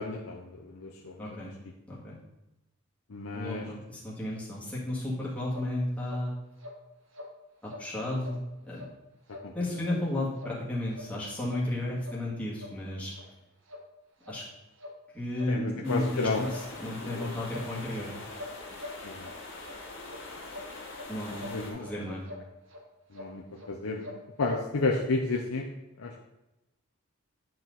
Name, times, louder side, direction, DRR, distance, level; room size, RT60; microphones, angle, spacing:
voice 1, 0.0-1.5 3.1-3.6 9.4-9.5 15.5-16.4 17.0-17.3 19.0-19.3 21.5-21.9 23.1-25.6 26.0-26.2, left 3 dB, 85° left, 0 dB, 0.7 m, -32 dB
voice 2, 1.2-1.5 1.9-2.1 3.3-6.3 7.6-8.8 9.5-13.1 14.3-14.4 15.1-18.1 21.1-21.4 21.8-22.2, left 1 dB, 5° left, -7 dB, 1.9 m, -33 dB
sound 1, 5.5-5.7 6.0-6.2 6.6-6.8 7.1-7.3 7.7-7.9 8.2-8.4 8.7-8.9 9.3-9.5 9.8-10.0 10.4-10.6 10.9-11.1 11.5-11.6 12.0-12.2 12.6-12.7 13.1-13.2 13.7-13.8 14.2-14.4 14.8-15.0 15.3-15.5 15.9-16.0 16.5-16.7 17.0-17.2 17.5-18.0 18.3-19.3 19.6-19.8 20.1-20.2 20.5-21.1 21.4-21.9 22.2-22.4 22.7-22.8 23.1-23.3 23.6-23.7 24.0-24.6 24.9-25.0, left 2 dB, 70° right, 1.2 m, -44 dB
sound 2, 15.8-21.7, left 2 dB, 65° left, 1.4 m, -43 dB
9.5 x 4.5 x 4.0 m, 0.95 s
head